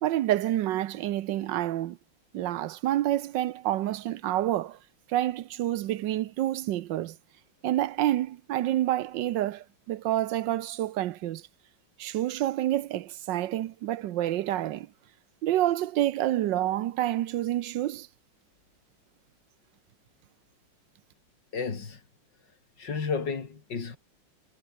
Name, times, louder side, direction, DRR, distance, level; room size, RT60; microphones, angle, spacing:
voice 1, 0.0-2.0 2.3-4.8 5.1-7.2 7.6-11.4 12.0-14.9 15.4-18.1, right 13 dB, 75° right, 1.4 m, -28 dB
voice 2, 21.5-22.0 22.8-24.0, left 5 dB, 65° left, 3.6 m, -32 dB
omnidirectional pair, 2.1 m